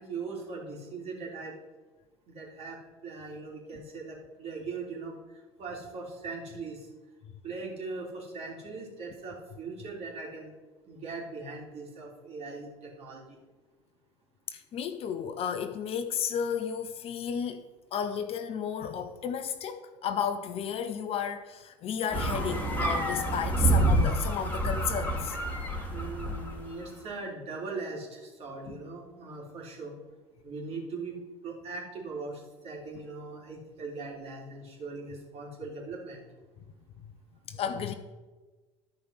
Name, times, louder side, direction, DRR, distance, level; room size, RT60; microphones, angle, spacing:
voice 1, 0.0-1.5 2.3-6.9 7.4-10.5 10.9-13.4 25.9-30.0 30.4-31.2 31.4-36.2, right 3 dB, 45° right, 3.3 m, -40 dB
voice 2, 14.5-17.6 17.9-25.4 28.7-28.8 37.5-37.9, left 7 dB, 40° left, 0.7 m, -33 dB
sound 1, 22.1-26.7, right 1 dB, 10° left, 2.0 m, -28 dB
12.0 x 5.1 x 5.6 m
figure-of-eight pair, 70°, 15 cm